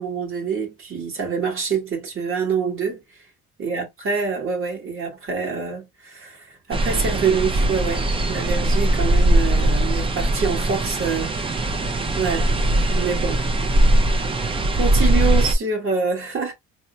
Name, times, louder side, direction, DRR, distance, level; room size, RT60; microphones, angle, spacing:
voice 1, 0.0-3.0 3.6-11.5 12.2-12.5 12.9-13.4 14.8-16.5, right 5 dB, 35° right, 1.9 m, -26 dB
sound 1, 6.7-15.5, right 1 dB, 15° right, 0.5 m, -20 dB
4.1 x 2.1 x 2.6 m
cardioid pair, 145°, 35 cm